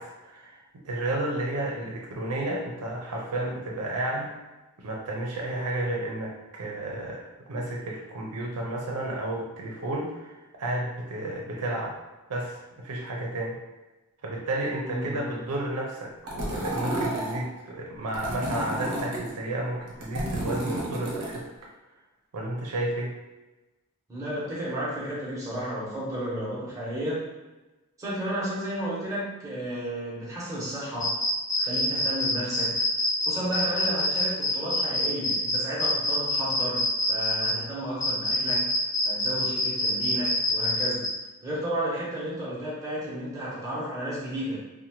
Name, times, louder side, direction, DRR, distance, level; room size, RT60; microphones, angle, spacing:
voice 1, 0.0-4.4 4.8-12.0 12.3-13.6 14.2-21.5 22.3-23.2 37.4-37.7, right 1 dB, 90° right, -1 dB, 0.5 m, -32 dB
voice 2, 14.8-15.2 24.1-27.3 28.0-31.1 31.6-32.7 33.2-38.7 39.0-41.0 41.4-44.6, equal, 15° right, -7 dB, 0.8 m, -32 dB
sound 1, 16.3-17.4 18.1-19.3 19.9-21.4, right 1 dB, 55° right, 0.8 m, -31 dB
sound 2, 31.0-37.5 38.0-41.1, left 1 dB, 15° left, 0.9 m, -25 dB
2.7 x 2.2 x 2.9 m, 1.1 s
head